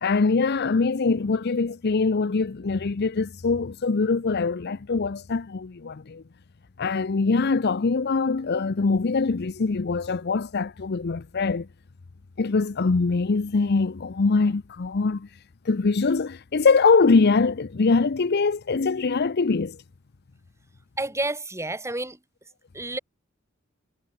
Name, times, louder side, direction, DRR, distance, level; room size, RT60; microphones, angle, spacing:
voice 1, 0.0-6.2 6.8-11.7 12.4-15.3 15.6-19.8, left 4 dB, 50° left, 0.6 m, -23 dB
voice 2, 21.0-22.2 22.7-23.0, right 2 dB, 15° right, 7.8 m, -30 dB
head